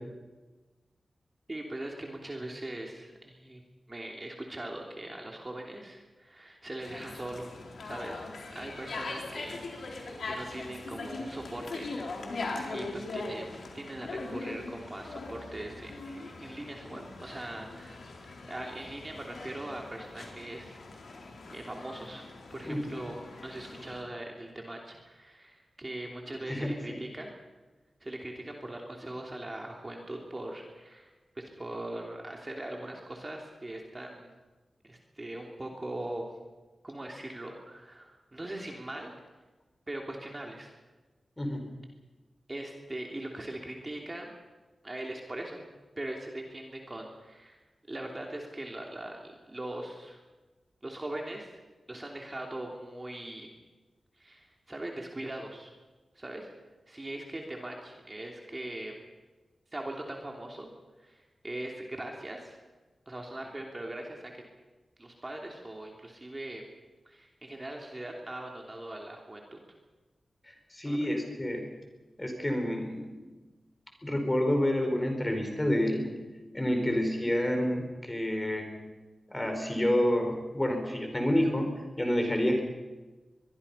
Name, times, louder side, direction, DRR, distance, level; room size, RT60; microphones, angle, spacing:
voice 1, 1.5-3.6 3.9-11.9 12.4-13.5 13.7-18.0 18.3-21.1 21.5-27.4 28.0-34.3 34.8-36.3 36.8-39.1 39.9-40.7 42.5-44.3 44.8-45.6 46.0-47.6 47.9-50.2 50.8-51.5 51.9-53.5 54.2-55.7 56.1-56.5 56.9-59.0 59.7-60.7 61.0-62.6 63.1-64.3 65.0-66.6 67.0-69.6 70.8-71.0, right 1 dB, 25° right, 0 dB, 3.0 m, -41 dB
sound 1, 6.8-24.0, left 3 dB, 75° left, 4.0 m, -41 dB
voice 2, 26.5-27.0 41.4-41.6 70.5-71.7 72.2-73.2 74.0-76.1 76.5-78.7 79.3-81.7 82.0-82.6, left 1 dB, 15° left, 4 dB, 4.9 m, -28 dB
23.5 x 22.5 x 5.7 m, 1.2 s
wide cardioid pair, 100°, 0 cm